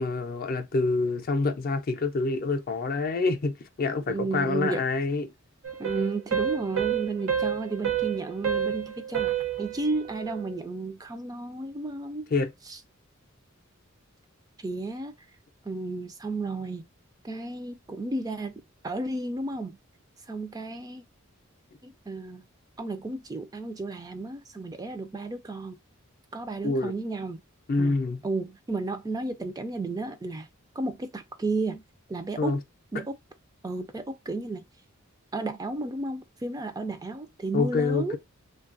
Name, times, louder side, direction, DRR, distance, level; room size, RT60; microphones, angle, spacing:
voice 1, 0.0-5.3 12.3-12.5 26.6-26.9 27.7-28.2 32.4-32.6 37.5-38.2, left 3 dB, 45° left, 0.4 m, -26 dB
voice 2, 4.1-4.8 5.8-12.3 12.7-12.8 14.6-15.1 15.7-16.8 17.2-18.5 18.8-19.8 20.3-21.0 21.8-22.5 22.8-25.8 26.3-27.4 27.8-28.0 28.2-30.5 30.8-31.8 32.1-32.6 32.9-33.2 33.6-34.6 35.3-38.2, right 3 dB, 20° right, 0.3 m, -33 dB
sound 1, 5.6-10.5, right 9 dB, 75° right, 0.8 m, -30 dB
3.2 x 2.3 x 2.4 m
head